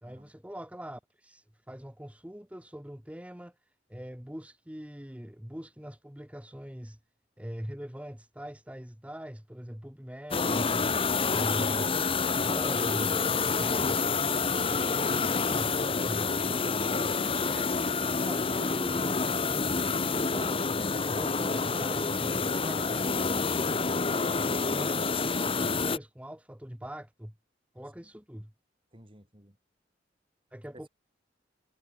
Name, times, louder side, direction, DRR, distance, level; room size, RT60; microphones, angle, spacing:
voice 1, 0.0-7.0 7.4-11.0 11.3-14.2 15.4-16.9 17.2-17.7 18.2-24.4 24.7-27.3 27.7-28.5 30.5-30.9, equal, 5° right, 1.6 m, -43 dB
sound 1, 10.3-26.0, left 4 dB, 30° left, 1.0 m, -28 dB
voice 2, 28.9-29.6 30.7-30.9, right 1 dB, 30° right, 4.2 m, -55 dB
head